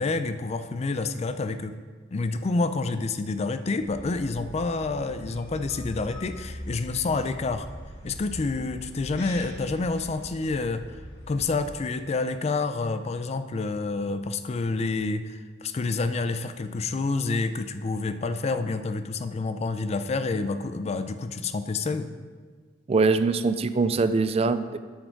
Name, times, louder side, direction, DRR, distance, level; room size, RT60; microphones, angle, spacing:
voice 1, 0.0-1.7 2.1-7.7 8.0-10.8 11.3-22.1, left 3 dB, 35° left, 10 dB, 0.4 m, -28 dB
sound 1, 3.8-11.8, equal, 75° left, 1.9 m, -42 dB
voice 2, 22.9-24.8, right 4 dB, 35° right, 12 dB, 0.3 m, -23 dB
8.1 x 6.5 x 4.5 m, 1.5 s
head